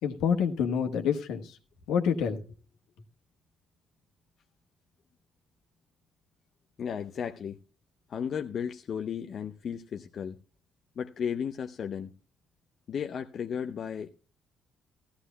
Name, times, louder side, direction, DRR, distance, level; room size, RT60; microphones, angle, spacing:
voice 1, 0.0-1.6 1.9-2.4, left 7 dB, 75° left, 1.3 m, -27 dB
voice 2, 6.8-7.6 8.1-10.4 11.0-12.1 12.9-14.1, left 7 dB, 55° left, 0.6 m, -34 dB
16.5 x 13.0 x 2.2 m
hypercardioid pair, 55°, 0 cm